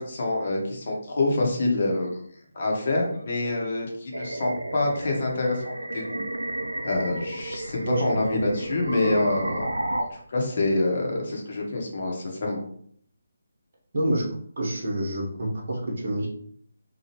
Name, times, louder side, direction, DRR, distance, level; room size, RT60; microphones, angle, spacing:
voice 1, 0.0-2.1 2.5-6.2 6.8-9.7 10.0-12.6, left 2 dB, 50° left, -1 dB, 0.9 m, -26 dB
sound 1, 4.1-10.0, right 1 dB, 80° right, 0.3 m, -32 dB
voice 2, 13.9-14.3 14.6-16.3, right 1 dB, 50° right, -1 dB, 1.0 m, -27 dB
3.0 x 2.3 x 2.9 m, 0.62 s
figure-of-eight pair, 150°, 0 cm